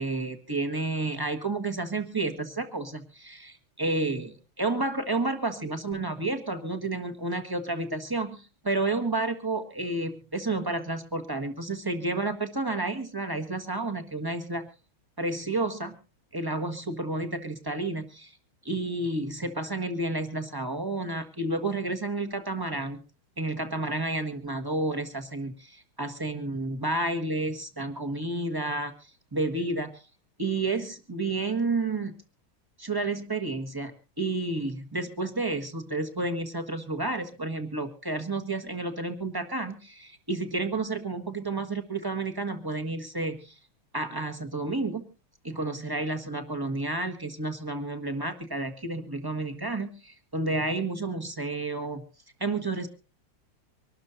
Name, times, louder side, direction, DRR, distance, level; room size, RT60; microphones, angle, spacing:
voice 1, 0.0-14.7 15.2-16.0 16.3-18.3 18.6-23.0 23.4-28.9 29.3-30.0 30.4-32.2 32.8-33.9 34.2-43.5 43.9-45.0 45.4-52.0 52.4-52.9, right 2 dB, 15° right, 7 dB, 1.3 m, -31 dB
25.0 x 12.5 x 2.7 m, 0.33 s
omnidirectional pair, 2.2 m